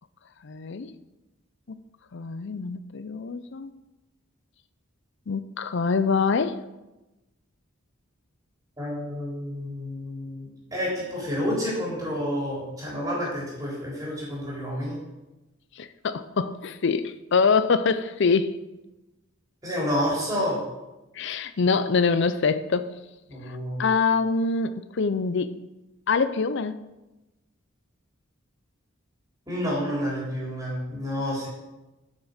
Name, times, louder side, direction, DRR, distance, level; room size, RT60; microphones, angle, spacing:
voice 1, 0.4-0.9 1.7-1.8 2.1-3.7 5.3-6.6 15.8-18.6 21.1-23.0 23.5-25.6 26.1-26.8, left 5 dB, 60° left, 0.5 m, -25 dB
voice 2, 8.8-15.0 19.6-20.6 23.3-23.8 29.5-31.5, equal, 15° right, 3.6 m, -29 dB
9.1 x 6.3 x 6.5 m
head